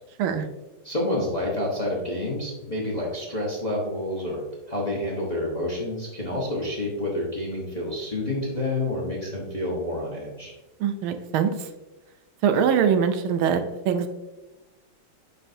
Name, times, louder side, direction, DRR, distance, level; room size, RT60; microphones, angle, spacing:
voice 1, 0.8-4.4 4.7-10.5, left 1 dB, 25° left, -4 dB, 0.9 m, -28 dB
voice 2, 10.8-11.7 12.4-13.6 13.9-14.1, right 7 dB, 80° right, 8 dB, 1.5 m, -22 dB
9.7 x 4.1 x 2.7 m, 1.1 s
omnidirectional pair, 2.3 m